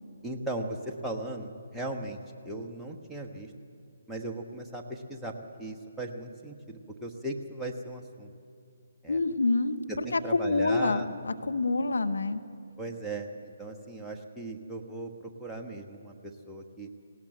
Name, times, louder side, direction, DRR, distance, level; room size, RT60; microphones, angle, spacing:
voice 1, 0.2-2.2 2.4-3.5 4.1-5.3 5.6-8.3 9.0-9.2 9.9-11.1 12.8-16.9, right 2 dB, ahead, -2 dB, 1.3 m, -37 dB
voice 2, 9.1-12.4, left 3 dB, 75° left, 9 dB, 1.0 m, -27 dB
19.0 x 17.5 x 7.8 m, 2.6 s
figure-of-eight pair, 145°, 0 cm